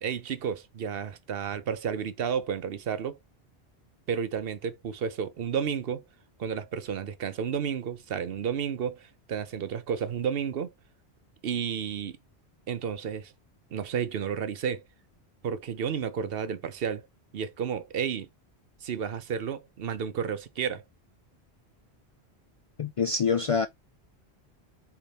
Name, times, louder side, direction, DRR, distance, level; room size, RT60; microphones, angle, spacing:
voice 1, 0.0-3.2 4.1-6.0 6.4-10.7 11.4-12.2 12.7-13.3 13.7-14.8 15.4-17.1 17.3-18.3 18.8-20.8, right 7 dB, 65° right, 0.9 m, -31 dB
voice 2, 22.8-23.7, left 5 dB, 65° left, 0.3 m, -25 dB
6.7 x 3.5 x 4.1 m
omnidirectional pair, 1.1 m